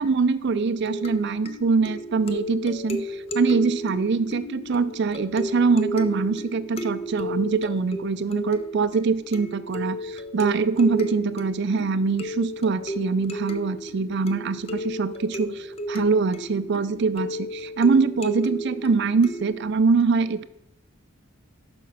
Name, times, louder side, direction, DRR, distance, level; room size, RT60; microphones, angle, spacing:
voice 1, 0.0-20.4, right 4 dB, 55° right, 13 dB, 0.4 m, -23 dB
sound 1, 0.5-19.7, equal, 30° left, 0.6 m, -33 dB
6.1 x 5.8 x 6.0 m, 0.80 s
head